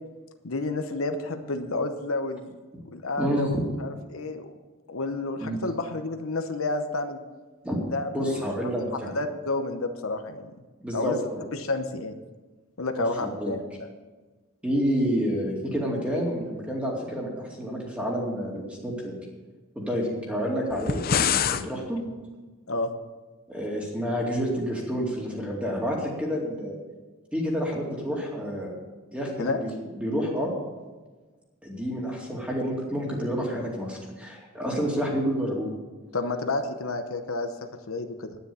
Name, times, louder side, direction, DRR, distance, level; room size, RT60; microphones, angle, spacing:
voice 1, 0.4-2.6 2.9-4.5 4.9-7.2 7.9-8.7 9.1-10.5 10.9-11.2 11.5-12.1 12.8-13.6 22.7-22.9 29.4-29.6 36.1-38.4, left 2 dB, 75° left, 7 dB, 0.9 m, -30 dB
voice 2, 3.2-3.6 5.4-5.6 7.6-7.8 8.1-9.1 10.8-11.5 13.0-13.5 14.6-19.2 19.8-22.0 23.5-26.8 27.3-28.7 29.1-29.7 30.0-30.5 31.6-35.7, equal, 5° right, -2 dB, 2.4 m, -29 dB
sound 1, 20.7-21.7, left 7 dB, 40° left, 0.5 m, -24 dB
10.5 x 9.9 x 6.9 m, 1.3 s
head